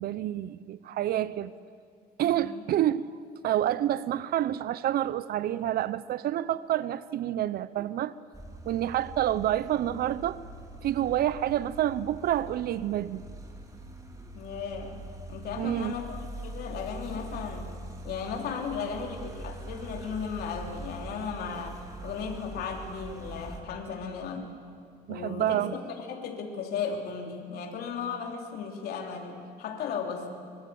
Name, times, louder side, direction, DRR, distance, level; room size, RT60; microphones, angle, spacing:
voice 1, 0.0-1.5 2.2-3.1 3.4-8.1 8.7-10.4 10.8-13.2 15.6-15.9 25.1-25.7, right 12 dB, 65° right, 0.8 m, -28 dB
voice 2, 2.2-2.6 14.3-15.0 15.3-17.7 18.0-24.5 25.1-30.3, left 6 dB, 70° left, 3.4 m, -36 dB
sound 1, 8.3-23.6, right 2 dB, 20° right, 3.8 m, -43 dB
25.0 x 23.0 x 8.6 m
cardioid pair, 110°, 17 cm